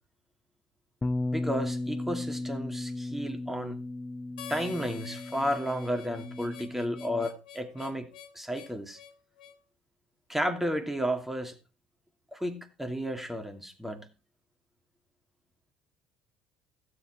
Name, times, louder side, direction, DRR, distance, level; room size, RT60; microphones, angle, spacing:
Bass guitar, 1.0-7.3, left 2 dB, 15° left, 0.5 m, -35 dB
voice 1, 1.3-3.8 4.5-9.0 10.3-11.6 12.3-14.1, equal, 5° right, 2.5 m, -32 dB
Harmonica, 4.4-9.6, left 9 dB, 75° left, 1.8 m, -48 dB
16.0 x 7.6 x 4.4 m
hypercardioid pair, 60°, 5 cm